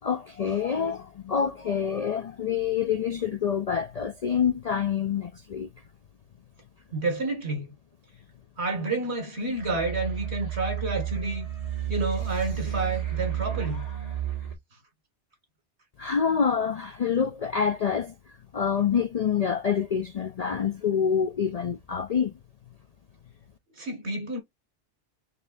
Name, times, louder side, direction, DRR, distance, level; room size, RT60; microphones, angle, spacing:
voice 1, 0.0-5.7 16.0-18.1 18.5-22.3, left 7 dB, 55° left, 0.4 m, -26 dB
voice 2, 6.9-7.7 8.6-11.5 11.9-13.8 23.8-24.4, right 2 dB, 70° right, 2.1 m, -29 dB
sound 1, 9.6-14.6, right 11 dB, 30° right, 1.8 m, -31 dB
4.3 x 3.4 x 2.5 m
omnidirectional pair, 1.2 m